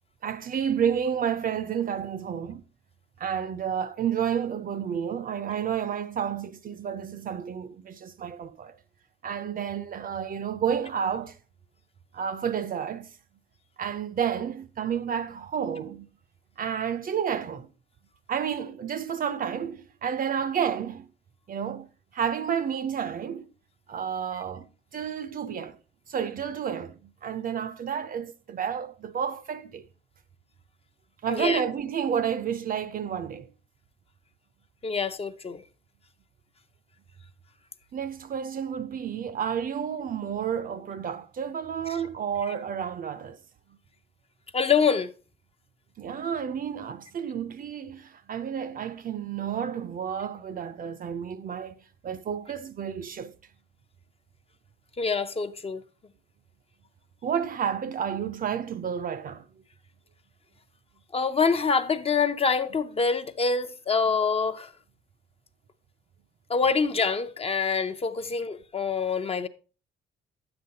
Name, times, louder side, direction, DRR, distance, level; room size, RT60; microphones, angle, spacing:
voice 1, 0.2-2.6 3.2-8.8 9.2-11.4 12.1-13.1 13.8-16.1 16.6-17.7 18.3-21.1 21.5-23.5 23.9-24.7 24.9-25.8 26.1-29.8 31.2-33.5 37.9-43.4 46.0-51.8 52.0-53.3 57.2-59.4, right 8 dB, 45° right, 0.5 m, -30 dB
voice 2, 31.3-31.6 34.8-35.6 44.5-45.1 55.0-55.8 61.1-64.7 66.5-69.5, left 5 dB, 30° left, 0.6 m, -25 dB
9.7 x 7.8 x 2.8 m
cardioid pair, 90°, 20 cm